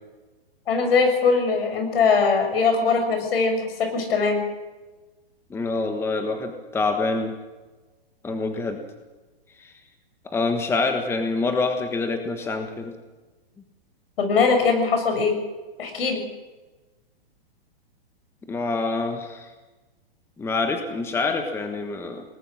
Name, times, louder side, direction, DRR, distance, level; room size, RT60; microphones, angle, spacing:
voice 1, 0.7-4.4 14.2-15.4 15.8-16.2, left 4 dB, 70° left, 5 dB, 6.9 m, -21 dB
voice 2, 5.5-7.3 8.2-8.8 9.6-9.7 10.2-12.9 18.5-19.4 20.4-22.2, left 3 dB, 10° left, 5 dB, 1.4 m, -26 dB
21.5 x 19.5 x 6.4 m, 1.2 s
hypercardioid pair, 145°, 31 cm